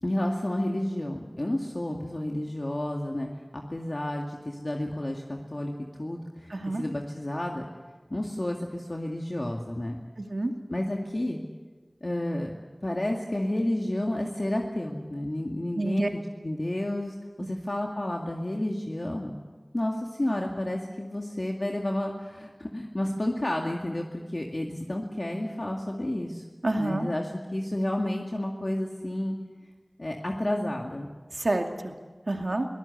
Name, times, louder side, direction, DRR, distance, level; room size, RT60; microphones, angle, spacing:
voice 1, 0.0-5.7 6.0-7.7 8.1-10.0 10.7-11.4 12.0-12.5 12.8-19.3 19.7-26.4 26.8-29.4 30.0-31.1, left 1 dB, 50° left, 0 dB, 2.1 m, -31 dB
voice 2, 6.5-6.8 10.2-10.5 15.8-16.1 26.6-27.1 31.3-31.9 32.3-32.7, right 2 dB, 70° right, 4 dB, 2.3 m, -28 dB
23.5 x 19.0 x 8.2 m, 1.4 s
wide cardioid pair, 50°, 0 cm